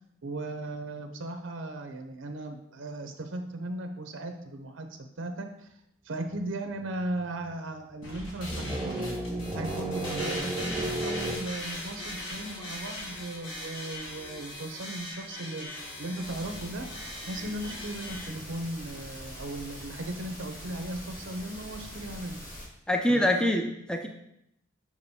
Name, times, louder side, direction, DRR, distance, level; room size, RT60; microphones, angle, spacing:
voice 1, 0.2-4.9 5.2-5.7 6.0-9.1 9.5-16.9 17.3-22.4 23.1-23.6, right 1 dB, 70° right, 6 dB, 0.6 m, -37 dB
sound 1, 6.3-6.4 6.8-7.4 8.2-11.4, right 1 dB, 10° right, 0.8 m, -33 dB
sound 2, 8.0-18.3, left 1 dB, 75° left, 1.4 m, -40 dB
sound 3, 16.2-22.7, equal, 40° left, 1.6 m, -43 dB
voice 2, 22.9-24.1, left 1 dB, 5° left, 3 dB, 0.4 m, -25 dB
6.9 x 4.9 x 2.7 m, 0.80 s
head